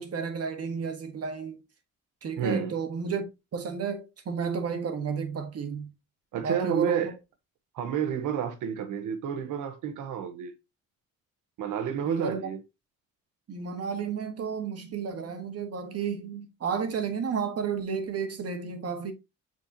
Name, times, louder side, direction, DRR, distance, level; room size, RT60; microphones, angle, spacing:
voice 1, 0.0-1.6 2.2-3.3 3.5-5.9 6.4-7.1 12.0-12.5 13.5-19.1, right 6 dB, 55° right, 1.7 m, -32 dB
voice 2, 2.4-2.7 6.3-7.1 7.7-10.5 11.6-12.6, right 8 dB, 85° right, 1.3 m, -30 dB
7.2 x 4.5 x 2.9 m
cardioid pair, 90°, 30 cm